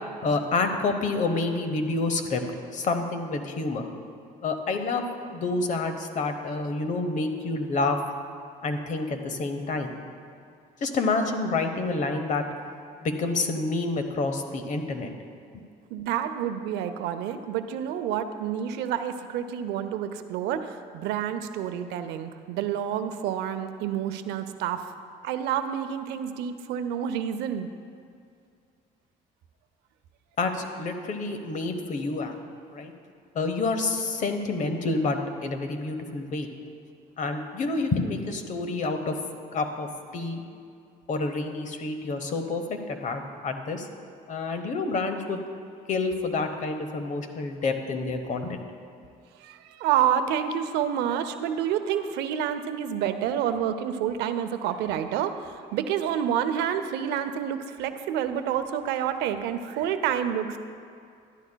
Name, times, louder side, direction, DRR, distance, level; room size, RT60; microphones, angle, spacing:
voice 1, 0.2-2.4 2.7-3.9 4.4-5.0 5.3-8.0 8.6-10.0 10.8-12.4 13.0-15.1 30.4-32.3 32.7-32.9 33.3-36.5 37.2-39.2 39.5-39.9 40.1-40.4 41.1-43.9 44.3-45.4 45.9-48.6, left 3 dB, 45° left, 6 dB, 0.9 m, -28 dB
voice 2, 15.9-24.9 25.2-27.7 49.4-60.6, right 9 dB, 90° right, 9 dB, 0.5 m, -28 dB
12.5 x 10.5 x 2.2 m, 2.4 s
cardioid pair, 110°, 17 cm